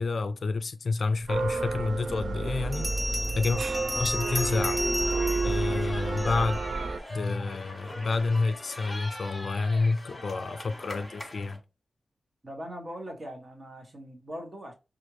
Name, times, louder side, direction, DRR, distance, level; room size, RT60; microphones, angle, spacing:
voice 1, 0.0-3.6 3.9-4.8 5.4-6.6 7.1-11.6, left 3 dB, 60° left, 0.3 m, -29 dB
sound 1, 1.3-7.0, right 3 dB, 70° right, 0.5 m, -30 dB
Bell, 2.7-6.6, equal, 15° right, 1.1 m, -34 dB
sound 2, 4.3-11.6, left 1 dB, 15° left, 1.3 m, -42 dB
voice 2, 12.4-14.7, equal, 35° right, 1.2 m, -40 dB
4.3 x 2.5 x 3.1 m
wide cardioid pair, 100°, 0 cm